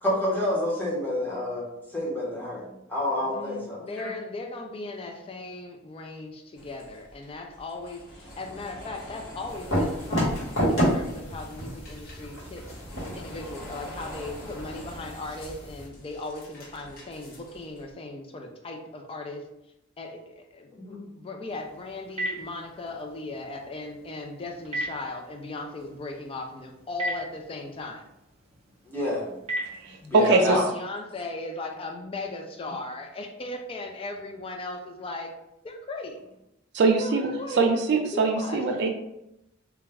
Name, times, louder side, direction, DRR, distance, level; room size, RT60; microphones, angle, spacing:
voice 1, 0.0-2.6 2.9-4.1 20.7-21.0 28.9-29.2 30.1-30.6, left 1 dB, 10° left, -6 dB, 0.7 m, -28 dB
voice 2, 3.2-12.7 13.2-19.5 20.0-28.1 30.0-35.3 35.6-36.2 36.8-37.6 38.1-38.6, left 2 dB, 25° left, 3 dB, 0.3 m, -37 dB
sound 1, 6.6-17.9, left 1 dB, 45° left, 0.8 m, -46 dB
sound 2, 9.5-15.9, equal, 65° left, 1.1 m, -30 dB
Telephone, 21.5-30.3, right 1 dB, 30° right, 0.7 m, -39 dB
voice 3, 29.7-30.6 36.7-38.9, right 3 dB, 55° right, 2 dB, 0.3 m, -23 dB
2.3 x 2.1 x 3.3 m, 0.86 s
head